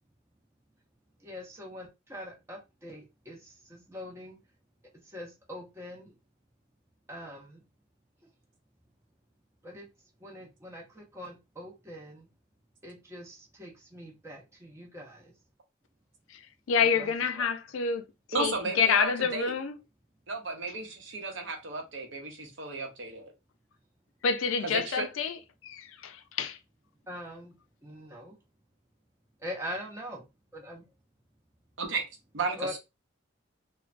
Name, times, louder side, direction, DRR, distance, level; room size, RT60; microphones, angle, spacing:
voice 1, 1.2-4.4 5.0-6.1 7.1-7.6 9.6-9.9 10.2-12.3 12.8-15.3 16.8-17.5 27.1-27.5 27.8-28.4 29.4-30.2 30.5-30.8 32.6-32.8, equal, 15° right, 0.7 m, -43 dB
voice 2, 16.7-18.0 18.4-19.7 24.2-25.4 25.6-26.6, left 6 dB, 85° left, 0.4 m, -28 dB
voice 3, 18.3-19.5 20.3-23.3 24.6-25.1 31.8-32.0 32.3-32.8, right 3 dB, 70° right, 0.7 m, -34 dB
3.1 x 2.1 x 2.5 m
head